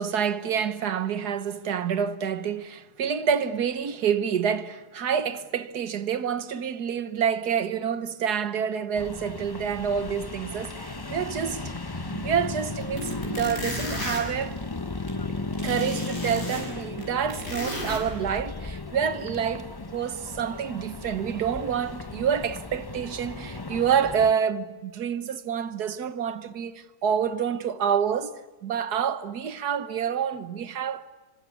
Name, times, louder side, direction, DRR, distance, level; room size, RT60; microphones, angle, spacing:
voice 1, 0.0-11.6 12.1-14.5 15.6-31.1, right 7 dB, 85° right, 1.7 m, -28 dB
sound 1, 9.0-24.3, left 3 dB, 20° left, 0.8 m, -35 dB
sound 2, 10.8-10.9 11.2-11.3 12.3-12.4 12.8-15.1 15.5-18.0, left 1 dB, 60° left, 7.2 m, -35 dB
27.0 x 24.5 x 8.4 m
omnidirectional pair, 1.6 m